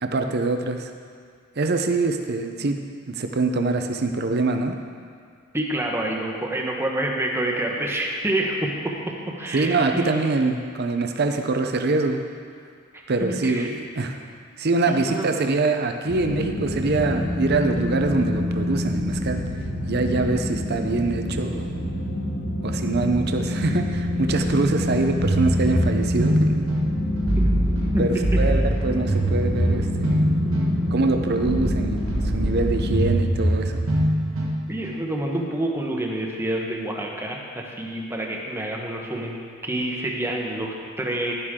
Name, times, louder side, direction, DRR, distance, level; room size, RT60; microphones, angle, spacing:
voice 1, 0.0-0.9 1.6-2.8 3.1-4.7 9.5-12.2 13.1-14.2 14.6-19.4 19.9-21.8 22.6-26.7 28.0-30.1 30.9-32.0 32.3-33.8, right 3 dB, 50° right, 5 dB, 0.7 m, -24 dB
voice 2, 5.5-8.9 9.4-10.2 12.9-13.7 14.9-15.3 27.9-28.4 34.7-41.3, right 1 dB, 10° right, -1 dB, 1.1 m, -27 dB
sound 1, 16.1-33.0, left 1 dB, 85° left, 2.8 m, -27 dB
sound 2, 25.2-35.0, right 1 dB, 75° right, 1.5 m, -23 dB
11.0 x 11.0 x 3.7 m, 2.1 s
head